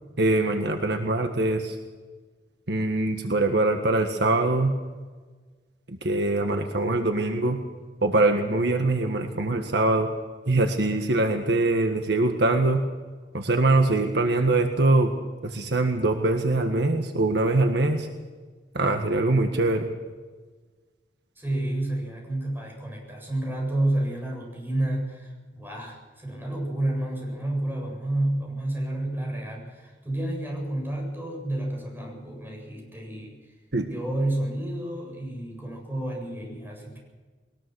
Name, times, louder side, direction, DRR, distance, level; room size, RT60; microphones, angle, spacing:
voice 1, 0.2-1.7 2.7-4.7 5.9-7.6 8.0-10.1 10.5-12.8 13.3-15.1 15.4-18.1 18.7-19.9 33.7-33.9, right 2 dB, 65° right, 5 dB, 1.6 m, -23 dB
voice 2, 21.4-33.5 33.8-37.0, right 1 dB, 10° right, 0 dB, 7.9 m, -30 dB
21.0 x 20.5 x 6.4 m, 1.4 s
head